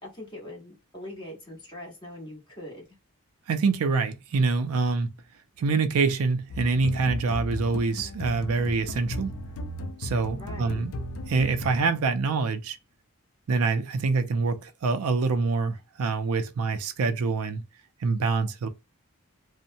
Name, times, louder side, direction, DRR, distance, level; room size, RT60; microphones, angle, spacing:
voice 1, 0.0-3.0 10.4-10.9, left 1 dB, 20° left, 1.0 m, -42 dB
voice 2, 3.5-5.1 5.6-9.3 10.0-10.9 11.3-12.8 13.5-17.6 18.0-18.7, right 4 dB, 85° right, 0.4 m, -25 dB
sound 1, 6.5-12.2, left 2 dB, 75° left, 0.4 m, -35 dB
2.7 x 2.1 x 2.6 m
head